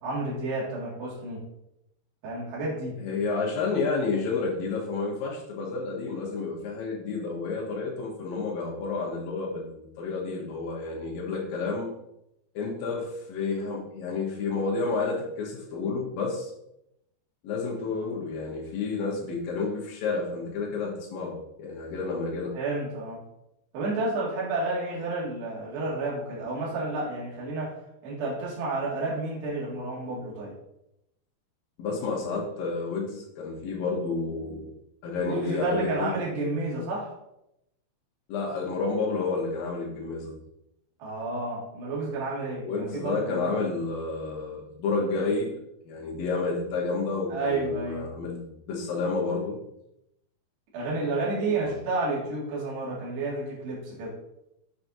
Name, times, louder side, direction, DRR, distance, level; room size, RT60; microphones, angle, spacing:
voice 1, 0.0-1.4 2.2-3.0 22.5-23.2 23.7-30.5 35.3-37.1 41.0-43.7 47.3-48.1 50.7-54.1, right 2 dB, 75° right, -5 dB, 4.2 m, -31 dB
voice 2, 3.0-11.9 12.5-16.5 17.4-22.6 31.8-34.7 35.0-36.1 38.3-40.4 42.6-49.6 51.4-51.7, left 4 dB, 70° left, -1 dB, 2.5 m, -30 dB
7.4 x 7.3 x 2.7 m, 0.84 s
omnidirectional pair, 4.8 m